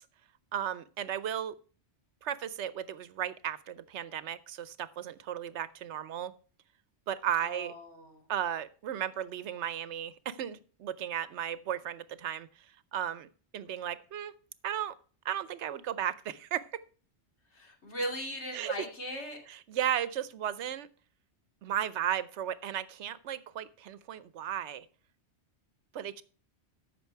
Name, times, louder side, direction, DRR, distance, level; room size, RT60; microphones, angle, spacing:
voice 1, 0.5-1.5 2.2-6.3 7.1-7.7 8.3-12.7 12.9-14.3 14.6-14.9 15.2-16.6 18.5-18.7 19.7-20.9 21.6-24.9 25.9-26.2, right 10 dB, 85° right, 16 dB, 1.0 m, -35 dB
voice 2, 7.4-8.3 17.5-19.4, equal, 80° left, 1 dB, 2.9 m, -38 dB
14.0 x 5.9 x 4.5 m, 0.39 s
omnidirectional pair, 1.2 m